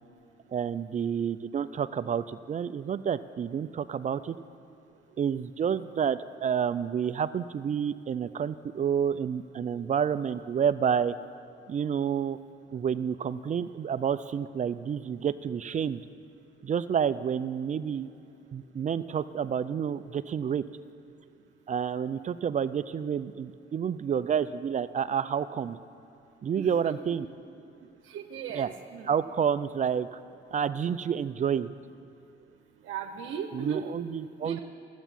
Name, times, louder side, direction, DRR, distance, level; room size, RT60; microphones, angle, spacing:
voice 1, 0.5-4.4 5.2-11.1 11.7-12.4 12.7-16.0 16.6-18.1 18.5-20.6 21.7-25.8 26.4-27.3 28.5-28.7 29.1-30.2 30.5-31.7 33.5-34.6, right 8 dB, 40° right, 14 dB, 0.4 m, -29 dB
voice 2, 26.6-27.2 28.1-29.1 32.8-33.9 34.4-34.6, right 7 dB, 85° right, 4 dB, 0.8 m, -37 dB
12.0 x 8.1 x 7.4 m, 2.6 s
cardioid pair, 90°, 20 cm